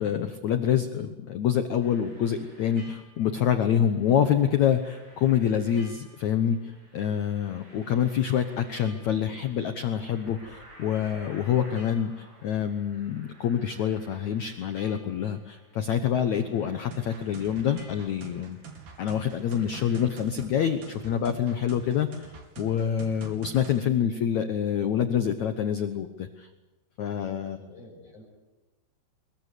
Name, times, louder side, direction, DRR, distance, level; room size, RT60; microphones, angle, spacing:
voice 1, 0.0-18.6 19.0-26.5 27.0-27.6, left 9 dB, 80° left, 8 dB, 1.6 m, -26 dB
sound 1, 1.8-20.1, right 1 dB, 45° right, 9.6 m, -54 dB
sound 2, 16.9-23.9, right 6 dB, 70° right, 4.8 m, -45 dB
voice 2, 27.6-28.2, left 1 dB, 45° left, -3 dB, 6.4 m, -49 dB
24.0 x 22.0 x 8.3 m, 1.2 s
omnidirectional pair, 4.9 m